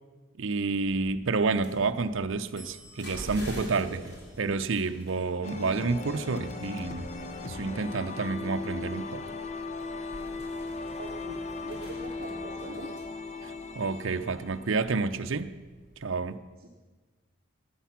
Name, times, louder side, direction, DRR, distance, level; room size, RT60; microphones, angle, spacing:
voice 1, 0.4-7.1 7.4-9.2 13.8-15.5 16.0-16.4, right 4 dB, 65° right, 8 dB, 0.6 m, -29 dB
sound 1, 0.7-16.1, equal, 50° left, 3.3 m, -47 dB
sound 2, 5.4-15.3, left 3 dB, 30° left, 0.6 m, -38 dB
voice 2, 11.0-12.9 16.6-16.7, right 2 dB, 45° right, 0 dB, 1.0 m, -43 dB
16.0 x 10.0 x 5.8 m, 1.3 s
head